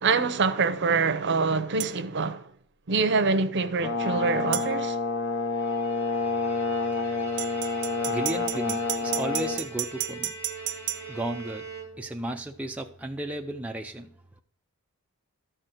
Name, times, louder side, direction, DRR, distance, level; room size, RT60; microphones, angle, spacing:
voice 1, 0.0-2.5 2.9-5.0, right 4 dB, 50° right, 0.7 m, -25 dB
sound 1, 1.8-2.0 4.5-4.7 7.4-11.0, right 15 dB, 85° right, 0.7 m, -32 dB
Brass instrument, 3.8-9.6, left 4 dB, 55° left, 0.7 m, -28 dB
Bowed string instrument, 5.3-12.3, right 4 dB, 90° left, 2.7 m, -42 dB
voice 2, 8.1-10.4 11.1-11.7 12.0-14.1, right 1 dB, 5° right, 0.4 m, -34 dB
13.0 x 4.5 x 6.4 m
head